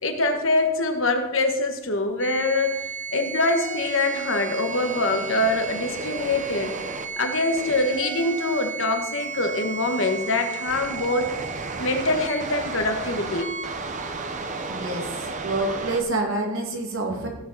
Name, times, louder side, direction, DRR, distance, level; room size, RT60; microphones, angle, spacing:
voice 1, 0.0-6.8 7.2-11.3 11.8-13.5, left 2 dB, 60° left, 4 dB, 1.6 m, -24 dB
sound 1, 2.2-16.0, right 4 dB, 35° right, 1.0 m, -33 dB
voice 2, 14.7-17.3, right 2 dB, 65° right, 1 dB, 2.4 m, -27 dB
16.5 x 7.7 x 4.3 m, 1.1 s
head